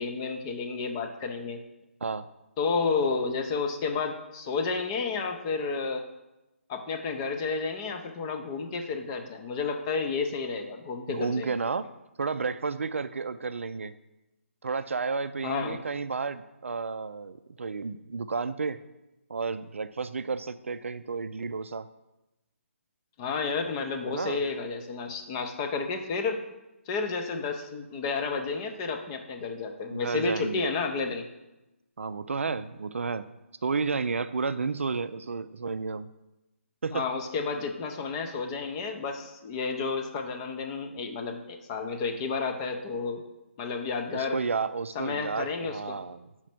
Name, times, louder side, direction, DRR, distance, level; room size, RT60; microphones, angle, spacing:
voice 1, 0.0-1.6 2.6-6.1 6.7-11.5 15.4-15.8 23.2-26.4 26.9-31.2 36.9-43.2 43.6-44.4 44.9-46.0, left 4 dB, 25° left, 5 dB, 0.6 m, -31 dB
voice 2, 11.1-11.9 12.2-13.9 14.6-18.8 19.3-21.9 24.0-24.4 29.9-30.7 32.0-33.3 33.6-36.1 36.8-37.0 44.1-46.3, right 4 dB, 65° right, 12 dB, 0.4 m, -32 dB
4.9 x 4.4 x 5.8 m, 0.97 s
figure-of-eight pair, 145°, 7 cm